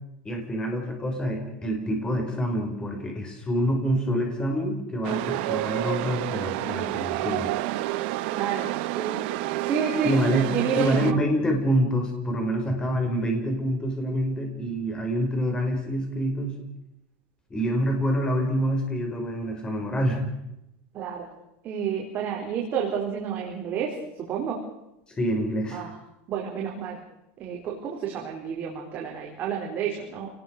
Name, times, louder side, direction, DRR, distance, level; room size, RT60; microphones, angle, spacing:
voice 1, 0.2-7.5 10.0-10.5 10.8-16.6 17.5-20.3 25.2-25.9, equal, 15° left, 3 dB, 5.7 m, -26 dB
Chatter / Subway metro underground, 5.0-11.1, right 17 dB, 60° right, 1.3 m, -29 dB
voice 2, 8.3-9.2 9.6-11.1 20.9-21.3 21.6-23.9 24.2-24.6 25.7-25.9 26.3-27.0 27.4-30.3, right 7 dB, 30° right, -1 dB, 4.4 m, -30 dB
29.0 x 20.0 x 6.8 m, 0.87 s
supercardioid pair, 160°, 6 cm